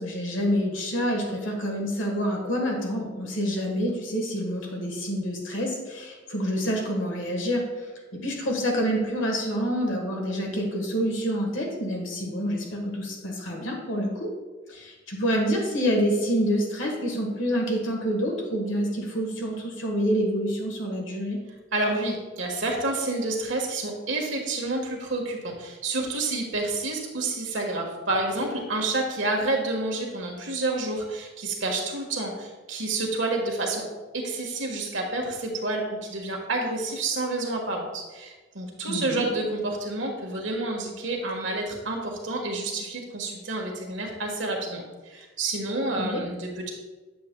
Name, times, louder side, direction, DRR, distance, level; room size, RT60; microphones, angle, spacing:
voice 1, 0.0-14.3 14.7-21.4 38.9-39.3 46.0-46.2, equal, 80° left, 0 dB, 1.4 m, -27 dB
voice 2, 21.7-33.8 34.1-46.7, right 2 dB, 75° right, 1 dB, 1.4 m, -29 dB
8.5 x 7.3 x 2.2 m, 1.3 s
head